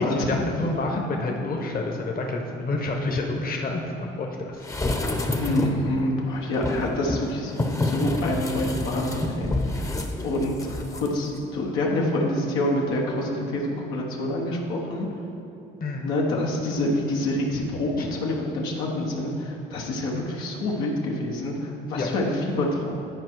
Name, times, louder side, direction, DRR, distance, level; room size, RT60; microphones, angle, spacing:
voice 1, 0.1-4.6 15.8-16.1 18.0-18.1 22.0-22.1, left 2 dB, 45° left, 1 dB, 1.1 m, -28 dB
sound 1, 4.6-5.9 6.5-11.1 11.4-11.5, left 1 dB, 15° left, 0.8 m, -28 dB
voice 2, 5.3-9.8 10.2-15.1 16.0-22.9, left 1 dB, 85° left, -2 dB, 1.1 m, -27 dB
10.5 x 4.4 x 4.6 m, 2.9 s
supercardioid pair, 80°, 21 cm